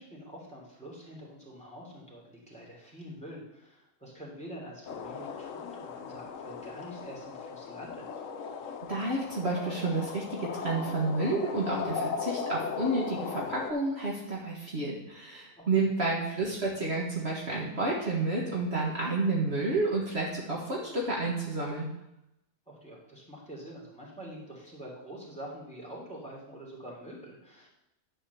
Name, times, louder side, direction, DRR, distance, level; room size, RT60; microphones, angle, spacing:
voice 1, 0.0-8.2 15.6-16.0 22.7-27.7, equal, 5° left, -4 dB, 2.9 m, -46 dB
sound 1, 4.9-13.7, left 6 dB, 70° left, 1.1 m, -37 dB
voice 2, 8.9-21.9, right 3 dB, 50° right, -3 dB, 1.7 m, -30 dB
10.0 x 4.3 x 6.9 m, 0.86 s
omnidirectional pair, 1.5 m